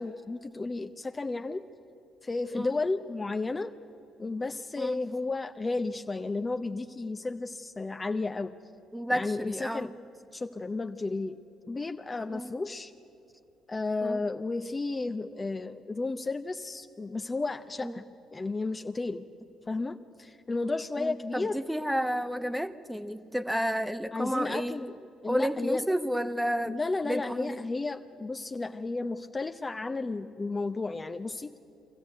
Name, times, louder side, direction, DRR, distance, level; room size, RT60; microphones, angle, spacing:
voice 1, 0.0-1.6 2.2-3.7 4.2-8.6 9.1-9.9 10.3-11.4 11.7-12.9 13.7-18.0 18.3-19.3 19.7-21.6 24.1-24.9 25.2-25.8 26.7-31.6, left 3 dB, 25° left, 6 dB, 0.7 m, -33 dB
voice 2, 8.9-9.9 12.3-12.5 14.0-14.2 17.8-18.0 21.0-24.8 25.3-26.8 27.0-27.6, equal, 5° right, 11 dB, 1.1 m, -31 dB
24.0 x 15.0 x 8.2 m, 2.8 s
hypercardioid pair, 55°, 0 cm